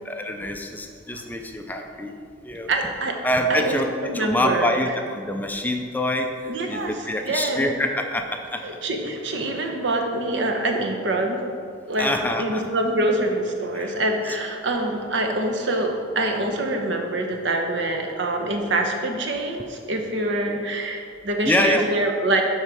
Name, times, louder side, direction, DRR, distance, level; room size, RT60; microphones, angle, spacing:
voice 1, 0.0-2.1 2.4-2.7 3.2-6.3 6.7-8.6 12.0-12.7 13.7-13.9 20.5-20.6 21.4-21.8, left 1 dB, 10° left, 4 dB, 0.5 m, -25 dB
voice 2, 2.7-3.2 3.5-4.9 6.5-7.7 8.6-11.4 11.9-22.4, right 1 dB, 70° right, 3 dB, 1.0 m, -25 dB
11.0 x 4.2 x 4.8 m, 2.3 s
head